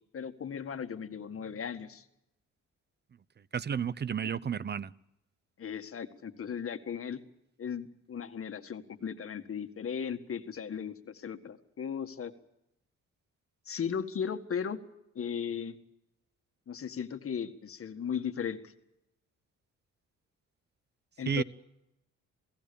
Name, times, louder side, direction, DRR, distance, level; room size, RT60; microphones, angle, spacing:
voice 1, 0.1-2.1 4.2-4.4 5.6-7.2 7.6-12.3 13.7-14.8 15.2-15.8 16.7-18.6 21.2-21.4, left 7 dB, 45° left, 7 dB, 1.9 m, -36 dB
voice 2, 3.5-4.9 21.3-21.4, right 7 dB, 35° right, 19 dB, 0.8 m, -31 dB
28.5 x 17.0 x 7.0 m, 0.86 s
cardioid pair, 90°, 30 cm